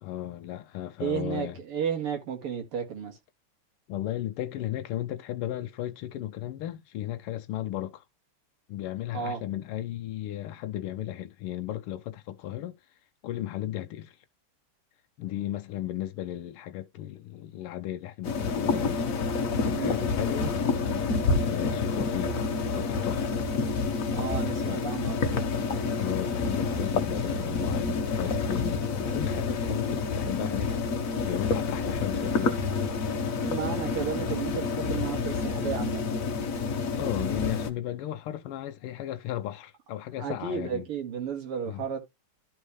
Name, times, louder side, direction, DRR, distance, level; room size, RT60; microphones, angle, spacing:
voice 1, 0.0-1.6 3.9-8.0 8.7-12.8 13.2-14.2 15.2-19.1 19.6-23.4 24.6-24.9 25.9-30.7 31.1-32.7 37.0-40.9 41.6-41.8, left 13 dB, 85° left, 1.6 m, -35 dB
voice 2, 1.0-3.2 9.1-9.4 19.7-20.0 24.1-25.5 33.4-36.1 40.2-42.0, right 7 dB, 90° right, 3.0 m, -33 dB
sound 1, 18.2-37.7, left 4 dB, 45° left, 1.3 m, -28 dB
12.5 x 4.5 x 3.1 m
omnidirectional pair, 2.4 m